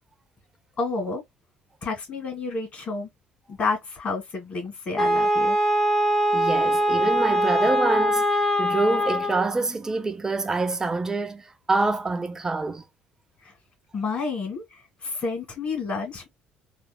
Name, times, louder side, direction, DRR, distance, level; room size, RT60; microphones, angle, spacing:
voice 1, 0.8-1.2 1.8-3.1 3.5-5.6 13.4-13.5 13.9-16.3, left 4 dB, 40° left, 2.2 m, -30 dB
Wind instrument woodwind instrument, 5.0-9.5, equal, 10° left, 1.0 m, -22 dB
voice 2, 6.3-12.8, right 3 dB, 15° right, 0.7 m, -26 dB
3.5 x 2.3 x 2.2 m
cardioid pair, 105°, 3 cm